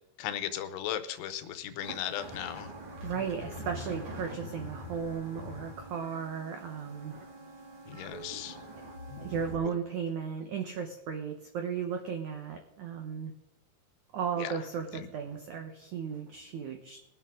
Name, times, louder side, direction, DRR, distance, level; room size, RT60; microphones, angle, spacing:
voice 1, 0.2-2.7 7.9-8.6 9.6-9.7 14.4-14.5 14.9-15.1, left 11 dB, 80° left, 11 dB, 2.9 m, -36 dB
sound 1, 1.8-9.5, equal, 45° right, 2.0 m, -44 dB
voice 2, 3.0-7.1 9.2-13.3 14.1-17.0, right 7 dB, 80° right, 4 dB, 1.7 m, -35 dB
21.5 x 8.4 x 3.7 m, 0.91 s
omnidirectional pair, 4.8 m